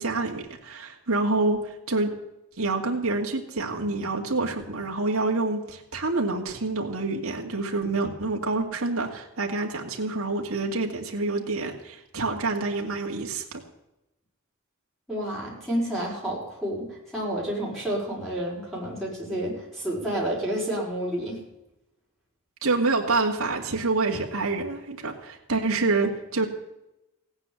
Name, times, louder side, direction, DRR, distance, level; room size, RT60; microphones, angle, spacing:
voice 1, 0.0-2.2 2.6-13.6 22.6-26.5, right 3 dB, 75° right, 0 dB, 2.3 m, -27 dB
voice 2, 15.1-21.4, right 1 dB, ahead, -5 dB, 5.4 m, -30 dB
16.5 x 9.7 x 7.2 m, 0.90 s
head